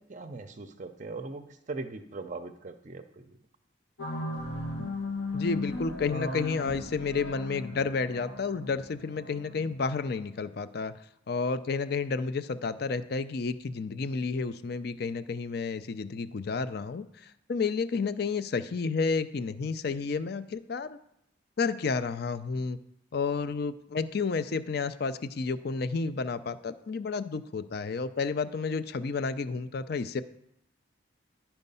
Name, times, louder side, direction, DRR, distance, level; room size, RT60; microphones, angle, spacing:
voice 1, 0.0-3.4, right 3 dB, 40° right, 8 dB, 0.5 m, -40 dB
sound 1, 4.0-10.3, left 2 dB, 90° left, 1.7 m, -36 dB
voice 2, 5.3-10.9 11.3-21.0 21.6-22.8 23.1-30.2, left 4 dB, 50° left, 13 dB, 0.4 m, -31 dB
11.0 x 4.5 x 5.5 m, 0.77 s
head